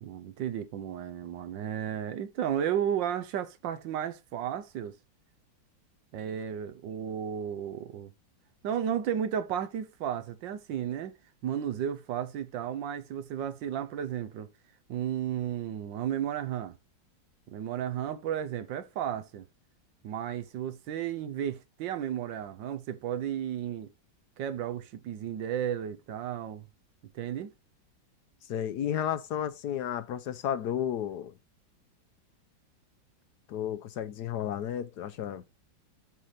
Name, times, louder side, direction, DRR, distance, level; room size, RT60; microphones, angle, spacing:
voice 1, 0.0-5.0 6.1-8.1 8.6-11.1 11.4-14.5 14.9-16.7 17.5-19.5 20.0-23.9 24.4-26.7 27.1-27.5, right 9 dB, 80° right, 1.5 m, -33 dB
voice 2, 28.5-31.3 33.5-35.4, left 10 dB, 70° left, 1.1 m, -32 dB
7.7 x 4.9 x 4.1 m
omnidirectional pair, 2.0 m